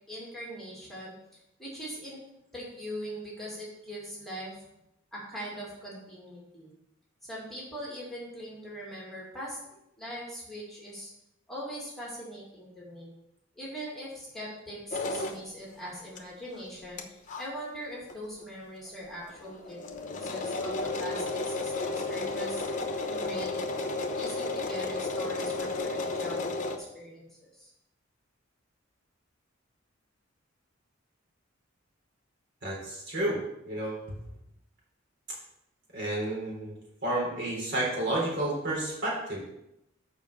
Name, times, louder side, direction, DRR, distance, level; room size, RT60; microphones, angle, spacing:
voice 1, 0.1-1.1 1.6-2.2 2.5-4.5 5.1-6.7 7.2-9.6 10.0-11.1 11.5-13.1 13.6-19.9 20.2-22.6 23.1-23.6 24.2-27.7, equal, ahead, -5 dB, 2.6 m, -41 dB
sound 1, 14.9-15.4 16.2-16.3 16.6-16.7 17.0-17.1 17.3-17.4 18.1-18.2 18.4-18.5 18.8-18.9 19.2-26.8, left 3 dB, 40° left, 0.9 m, -33 dB
voice 2, 32.6-33.4 33.7-34.0 35.9-36.7 37.0-39.4, right 1 dB, 60° right, -3 dB, 3.7 m, -30 dB
7.2 x 5.4 x 7.0 m, 0.82 s
head